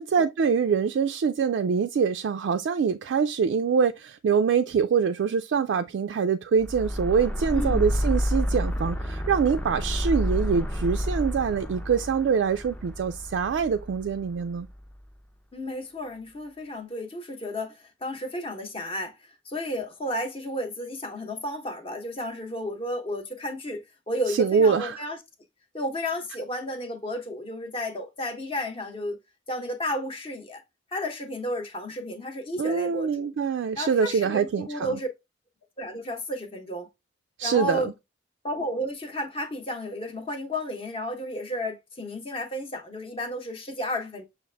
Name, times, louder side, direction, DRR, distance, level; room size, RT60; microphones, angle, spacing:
voice 1, 0.0-14.7 24.3-25.0 32.6-35.0 37.4-37.9, right 6 dB, 65° right, 0.3 m, -24 dB
sound 1, 6.6-14.9, equal, 10° left, 0.4 m, -30 dB
voice 2, 7.5-7.8 15.5-19.2 19.5-25.2 25.7-29.2 29.5-30.6 30.9-33.3 33.8-35.1 35.8-36.9 37.4-37.9 38.4-44.2, left 1 dB, 30° left, 0.9 m, -32 dB
6.3 x 2.5 x 3.3 m
head